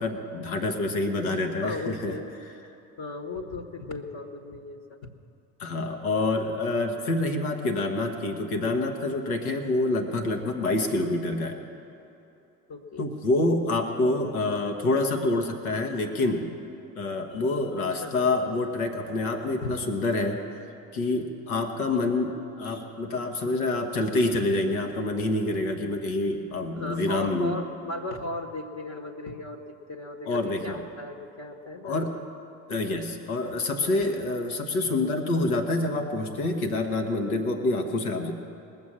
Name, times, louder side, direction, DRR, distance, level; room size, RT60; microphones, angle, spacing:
voice 1, 0.0-2.2 5.6-11.6 13.0-16.4 17.0-20.4 20.9-27.5 30.2-30.8 31.8-32.2 32.7-38.3, left 2 dB, 85° left, 5 dB, 1.3 m, -27 dB
voice 2, 1.6-2.3 3.0-5.0 12.7-13.1 18.0-18.3 19.6-19.7 21.9-22.1 23.2-23.3 24.3-24.5 26.7-29.6 29.9-32.0 34.8-34.9, left 2 dB, 40° left, 4 dB, 1.3 m, -36 dB
20.0 x 7.3 x 7.5 m, 2.9 s
hypercardioid pair, 65°, 42 cm